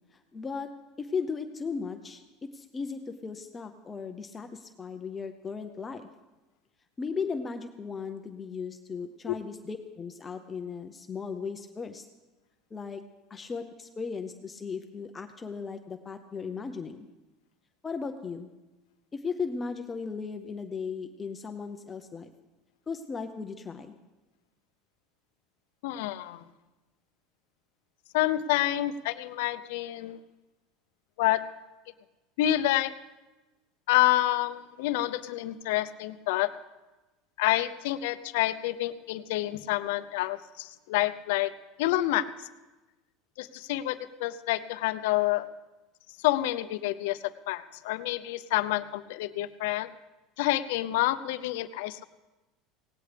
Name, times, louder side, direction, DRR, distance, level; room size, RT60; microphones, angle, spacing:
voice 1, 0.1-6.1 7.0-12.1 12.7-13.0 13.3-17.1 17.8-18.5 19.1-22.3 22.9-24.0, left 5 dB, 20° left, 7 dB, 0.6 m, -36 dB
voice 2, 25.8-26.4 28.1-30.2 31.2-31.5 32.4-32.9 33.9-36.5 37.4-41.5 41.8-42.5 43.4-45.5 46.2-49.9 50.4-52.0, left 15 dB, 80° left, 13 dB, 0.6 m, -28 dB
17.5 x 16.5 x 3.4 m, 1.1 s
supercardioid pair, 140°, 0 cm